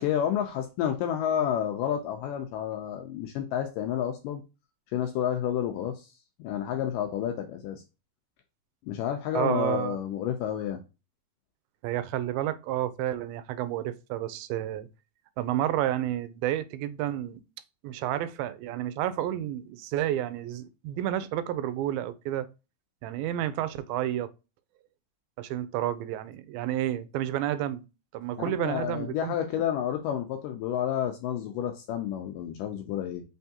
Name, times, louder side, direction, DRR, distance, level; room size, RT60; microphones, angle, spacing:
voice 1, 0.0-4.4 4.9-6.1 6.4-7.8 8.8-10.8 28.5-33.2, left 10 dB, 80° left, 1.9 m, -30 dB
voice 2, 9.3-10.0 11.8-14.9 15.4-17.4 17.8-22.5 23.0-24.3 25.4-27.8 28.1-29.4, right 12 dB, 85° right, 2.3 m, -30 dB
5.4 x 3.4 x 2.7 m
omnidirectional pair, 4.3 m